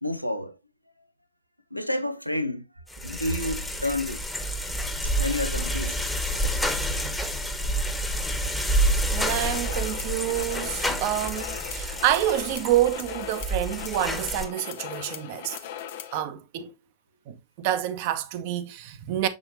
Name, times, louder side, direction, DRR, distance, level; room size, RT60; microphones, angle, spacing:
voice 1, 0.0-0.6 1.7-2.7 3.0-4.2 5.2-6.0, left 1 dB, 90° left, 0.6 m, -29 dB
sound 1, 2.9-14.5, right 1 dB, 5° left, 1.2 m, -28 dB
voice 2, 9.1-15.6 16.1-16.7 17.3-19.3, right 12 dB, 50° right, 0.8 m, -28 dB
sound 2, 9.4-16.2, left 10 dB, 55° left, 0.8 m, -39 dB
6.6 x 6.1 x 2.7 m
figure-of-eight pair, 90°, 0 cm